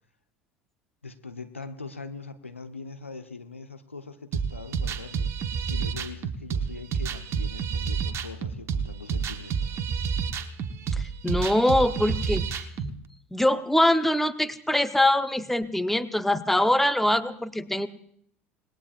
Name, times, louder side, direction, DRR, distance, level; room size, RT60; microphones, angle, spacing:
voice 1, 1.0-5.3 5.7-9.8, left 3 dB, 90° left, 9 dB, 0.9 m, -42 dB
sound 1, 4.3-12.9, right 6 dB, 40° right, 1.1 m, -29 dB
voice 2, 10.9-12.9 13.3-17.9, left 1 dB, 5° left, 10 dB, 0.9 m, -23 dB
27.0 x 20.0 x 2.5 m, 0.67 s
figure-of-eight pair, 70°, 7 cm